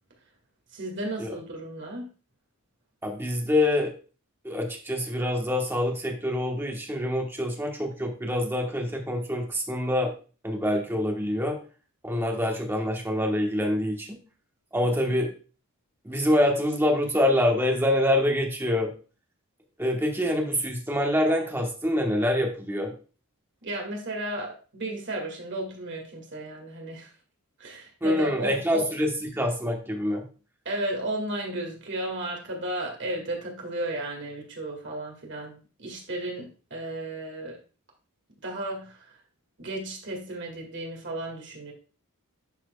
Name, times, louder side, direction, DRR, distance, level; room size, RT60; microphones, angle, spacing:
voice 1, 0.7-2.1 23.6-27.1 27.6-28.9 30.7-37.6 38.4-39.2 39.6-41.7, right 1 dB, 55° right, 0 dB, 2.1 m, -34 dB
voice 2, 3.0-3.9 4.4-10.1 10.4-11.6 12.0-14.2 14.7-15.3 16.0-18.9 19.8-22.9 28.0-30.2, left 1 dB, 10° right, 0 dB, 1.2 m, -25 dB
11.5 x 4.4 x 2.3 m, 0.36 s
head